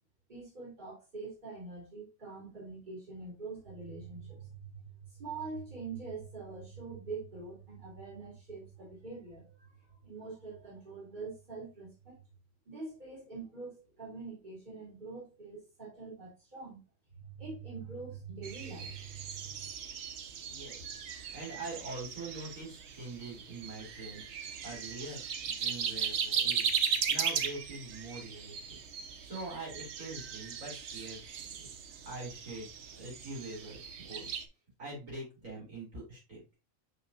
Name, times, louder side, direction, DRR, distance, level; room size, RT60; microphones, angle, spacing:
voice 1, 0.3-12.2 12.6-16.8 17.2-19.6, right 4 dB, 35° right, -5 dB, 3.3 m, -44 dB
sound 1, 18.4-34.4, right 7 dB, 60° right, 1.0 m, -37 dB
voice 2, 20.5-20.9 21.3-26.7 27.1-32.7 32.9-34.4 34.8-36.5, right 2 dB, 80° right, -5 dB, 4.1 m, -44 dB
6.0 x 5.8 x 2.7 m, 0.29 s
omnidirectional pair, 1.4 m